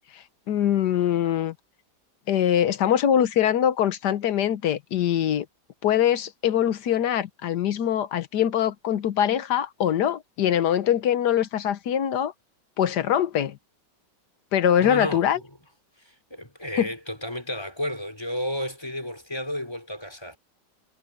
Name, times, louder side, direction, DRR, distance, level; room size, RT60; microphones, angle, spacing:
voice 1, 0.1-1.5 2.3-5.5 5.8-12.3 12.8-13.6 14.5-15.4 16.8-16.9, left 10 dB, 70° left, 1.5 m, -23 dB
voice 2, 14.8-15.4 16.0-20.4, equal, 15° left, 4.6 m, -32 dB
omnidirectional pair, 1.9 m